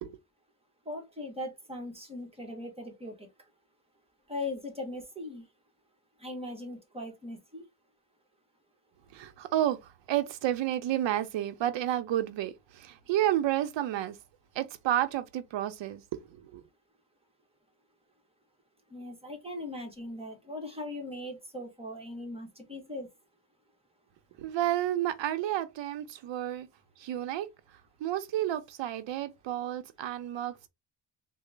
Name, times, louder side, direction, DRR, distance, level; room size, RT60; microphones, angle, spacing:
voice 1, 0.8-3.3 4.3-5.5 6.2-7.7 18.9-23.1, left 1 dB, 15° right, 0.9 m, -39 dB
voice 2, 9.1-14.2 14.5-16.6 24.4-26.7 27.0-27.5 28.0-30.7, right 12 dB, 90° right, 0.6 m, -31 dB
3.8 x 2.0 x 3.2 m
wide cardioid pair, 155°, 43 cm